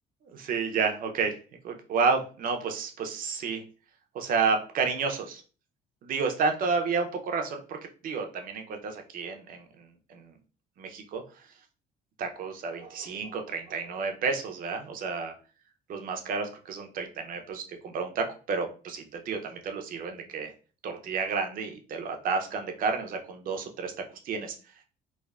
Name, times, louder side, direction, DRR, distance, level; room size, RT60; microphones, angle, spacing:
voice 1, 0.3-1.4 1.6-3.6 4.1-5.4 6.0-7.8 8.0-10.3 10.8-11.2 12.2-15.3 15.9-20.5 20.8-23.9 24.2-24.5, right 5 dB, 55° right, 4 dB, 0.6 m, -31 dB
3.2 x 2.0 x 2.3 m, 0.37 s
cardioid pair, 110°, 17 cm